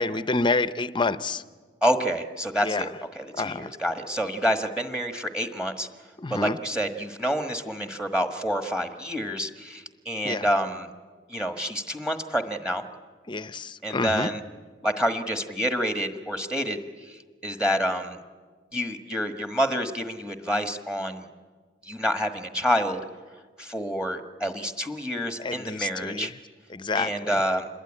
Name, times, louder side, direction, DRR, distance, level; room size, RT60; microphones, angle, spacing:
voice 1, 0.0-1.4 2.6-2.9 3.4-3.7 6.2-6.6 10.2-10.5 13.3-14.3 25.4-26.3 26.7-27.4, left 3 dB, 25° left, 14 dB, 0.7 m, -28 dB
voice 2, 1.8-5.9 6.3-10.9 11.3-12.8 13.8-14.4 14.8-18.2 18.7-21.3 21.8-23.0 23.6-26.3 26.9-27.7, equal, 5° right, 7 dB, 1.4 m, -28 dB
26.5 x 21.5 x 9.9 m, 1.5 s
head